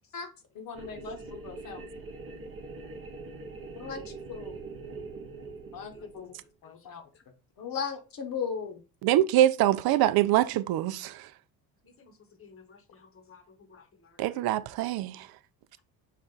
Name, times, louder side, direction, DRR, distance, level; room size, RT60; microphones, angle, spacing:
voice 1, 0.5-1.8 3.7-4.6 5.7-6.4 6.6-7.0 7.6-8.8, left 6 dB, 55° left, 1.1 m, -37 dB
sound 1, 0.7-6.5, right 3 dB, 30° right, 0.9 m, -43 dB
voice 2, 9.0-11.2 14.2-15.3, right 13 dB, 60° right, 0.5 m, -24 dB
voice 3, 11.8-14.4, left 5 dB, 30° left, 1.0 m, -56 dB
5.6 x 2.4 x 3.8 m
supercardioid pair, 90°, 41 cm